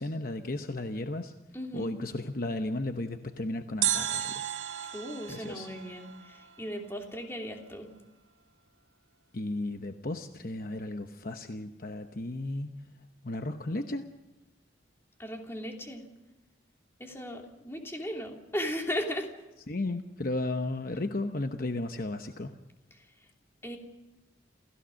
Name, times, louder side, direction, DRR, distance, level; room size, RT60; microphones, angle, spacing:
voice 1, 0.0-1.3 1.7-4.4 5.3-5.7 9.3-12.7 13.2-14.1 19.7-22.5, left 2 dB, 50° left, 6 dB, 0.9 m, -34 dB
voice 2, 1.5-1.9 4.9-7.9 15.2-16.0 17.0-19.3 22.9-23.0 23.6-23.8, equal, 15° left, 1 dB, 2.9 m, -36 dB
sound 1, 3.8-6.9 7.1-7.2, right 11 dB, 80° right, 1.1 m, -34 dB
28.5 x 15.5 x 6.4 m, 1.1 s
head